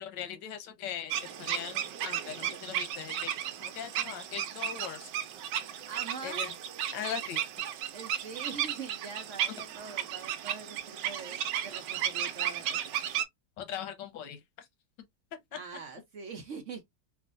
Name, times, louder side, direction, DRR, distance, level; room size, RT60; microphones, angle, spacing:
voice 1, 0.0-3.3 3.6-5.1 6.2-6.5 6.9-7.4 13.6-14.4 15.3-15.4, left 9 dB, 90° left, 1.4 m, -40 dB
sound 1, 1.1-13.2, right 10 dB, 90° right, 1.2 m, -34 dB
voice 2, 5.8-6.5 7.9-12.9 15.5-16.8, right 5 dB, 60° right, 0.8 m, -43 dB
3.5 x 2.4 x 2.4 m
omnidirectional pair, 1.9 m